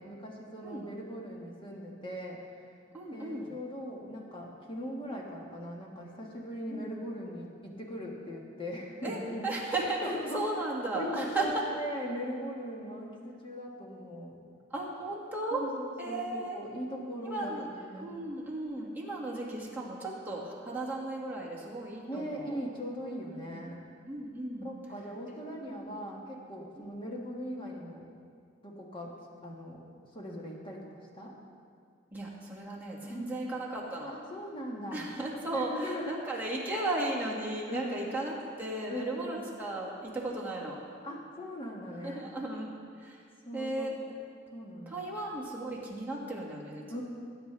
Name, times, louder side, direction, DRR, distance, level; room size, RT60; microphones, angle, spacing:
voice 1, 0.0-2.4 3.1-9.5 10.0-10.5 10.9-14.4 15.5-18.1 22.1-23.8 24.6-28.1 28.6-29.1 29.4-29.8 30.1-31.4 33.1-33.3 34.1-35.1 35.5-36.4 37.7-38.0 38.9-39.4 41.0-42.2 43.4-44.1 44.5-45.1 46.9-47.0, equal, 25° left, -2 dB, 1.7 m, -40 dB
voice 2, 2.9-3.5 6.7-6.9 9.0-11.8 14.7-15.6 16.0-16.6 17.2-17.7 18.0-22.6 23.5-23.7 24.1-24.7 25.5-26.0 26.9-27.0 32.1-34.1 34.9-40.8 42.0-42.7 43.0-43.2 43.5-44.0 44.9-47.0, right 2 dB, 10° right, -5 dB, 2.0 m, -35 dB
19.0 x 9.3 x 3.4 m, 2.2 s
head